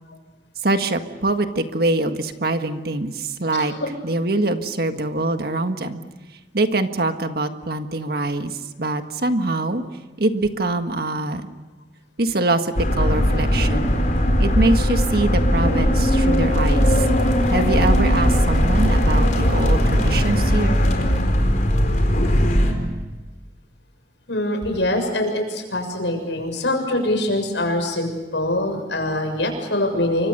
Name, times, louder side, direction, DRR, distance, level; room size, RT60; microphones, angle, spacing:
voice 1, 0.6-3.7 4.0-6.0 6.5-9.8 10.2-11.5 12.2-14.0 14.4-17.0 17.5-20.8, right 2 dB, 55° right, 7 dB, 1.7 m, -23 dB
voice 2, 3.6-3.9 24.3-30.3, left 1 dB, 85° left, 4 dB, 6.9 m, -23 dB
sound 1, 12.8-22.7, equal, 45° left, 4.4 m, -18 dB
29.0 x 25.0 x 6.8 m, 1.2 s
head